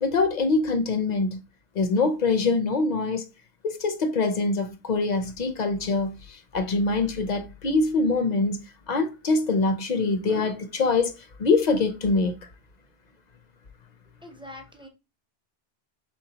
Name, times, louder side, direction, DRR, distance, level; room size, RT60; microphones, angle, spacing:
voice 1, 0.0-1.4 1.8-3.2 3.6-8.6 8.9-11.1 11.4-12.3, left 3 dB, 55° left, 0.6 m, -24 dB
voice 2, 14.2-14.9, left 1 dB, 5° right, 0.4 m, -43 dB
4.4 x 3.2 x 2.8 m
omnidirectional pair, 1.0 m